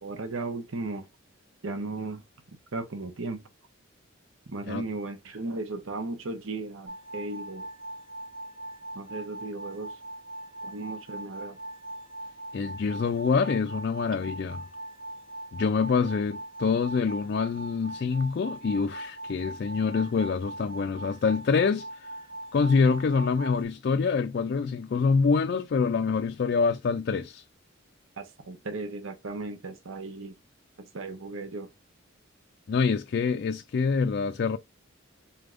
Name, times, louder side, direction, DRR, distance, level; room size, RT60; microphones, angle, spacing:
voice 1, 0.0-1.0 1.6-2.2 2.7-3.4 4.5-7.6 8.9-10.0 10.6-11.6 28.2-30.4 30.8-31.7, right 3 dB, 80° right, 0.9 m, -36 dB
sound 1, 6.9-23.6, right 1 dB, 25° right, 1.0 m, -41 dB
voice 2, 12.5-14.6 15.5-22.1 22.5-27.4 32.7-34.6, left 5 dB, 55° left, 0.3 m, -26 dB
4.2 x 3.4 x 2.4 m
head